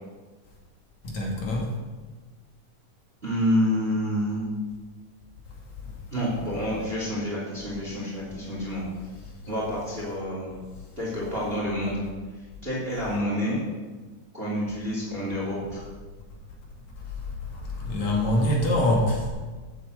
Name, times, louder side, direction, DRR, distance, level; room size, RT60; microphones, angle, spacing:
voice 1, 1.0-1.7 17.0-17.2 17.5-19.3, left 1 dB, 60° left, -2 dB, 3.4 m, -25 dB
voice 2, 3.2-4.5 6.1-8.8 9.5-10.5 11.0-12.0 12.6-13.6 14.3-15.6, equal, 15° right, -5 dB, 3.1 m, -28 dB
9.3 x 7.9 x 8.1 m, 1.3 s
omnidirectional pair, 3.8 m